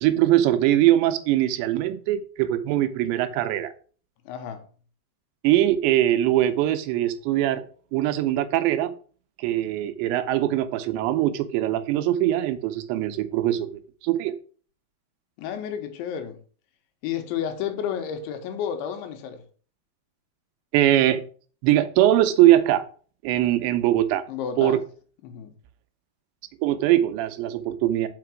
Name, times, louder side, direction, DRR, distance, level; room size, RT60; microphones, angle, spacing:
voice 1, 0.0-3.7 5.4-7.6 7.9-8.9 9.4-13.7 14.0-14.3 20.7-21.2 21.6-22.9 23.2-24.2 24.6-24.8 26.6-28.1, right 13 dB, 85° right, 3.0 m, -21 dB
voice 2, 4.3-4.6 15.4-16.4 17.0-19.4 24.3-24.8 25.2-25.5, left 8 dB, 90° left, 3.5 m, -31 dB
5.9 x 5.9 x 6.1 m
omnidirectional pair, 5.1 m